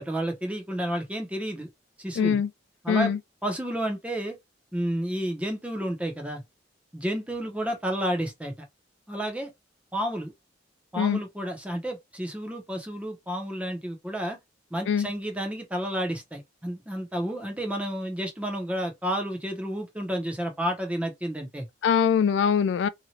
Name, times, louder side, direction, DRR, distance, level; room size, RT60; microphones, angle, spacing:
voice 1, 0.0-1.7 2.0-2.4 2.8-3.1 3.4-4.4 4.7-6.4 6.9-8.5 9.1-9.5 9.9-10.3 10.9-14.4 14.7-21.7, equal, 5° right, 0.8 m, -31 dB
voice 2, 2.2-2.5 2.9-3.2 11.0-11.2 14.9-15.1 21.8-22.9, left 7 dB, 70° left, 0.3 m, -23 dB
2.8 x 2.4 x 2.9 m
head